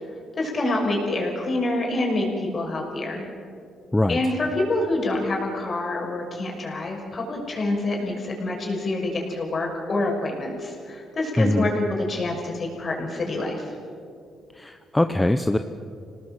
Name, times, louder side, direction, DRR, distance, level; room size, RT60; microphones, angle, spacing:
voice 1, 0.3-3.3 4.1-13.7, left 2 dB, 40° left, 1 dB, 6.2 m, -26 dB
voice 2, 11.4-11.7 14.6-15.6, left 1 dB, 10° left, 8 dB, 0.9 m, -21 dB
26.5 x 18.5 x 7.6 m, 2.3 s
cardioid pair, 90°, 0 cm